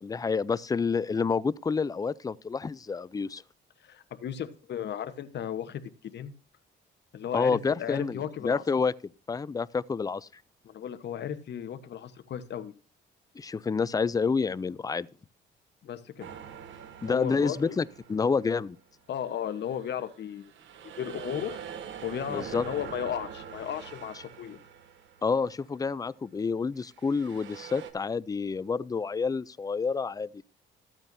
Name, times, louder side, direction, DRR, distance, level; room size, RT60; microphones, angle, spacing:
voice 1, 0.0-3.4 7.3-8.9 9.3-10.3 13.4-15.1 17.0-18.8 22.3-22.6 25.2-30.4, left 5 dB, 20° left, 0.4 m, -28 dB
voice 2, 3.8-6.3 7.1-8.6 10.6-12.7 15.8-16.3 17.1-17.8 19.1-20.5 21.0-21.6 22.0-24.6, left 9 dB, 60° left, 1.1 m, -35 dB
sound 1, 16.2-18.7 19.2-25.7 26.8-27.9, right 8 dB, 70° right, 1.3 m, -44 dB
13.5 x 8.9 x 2.6 m
cardioid pair, 90°, 20 cm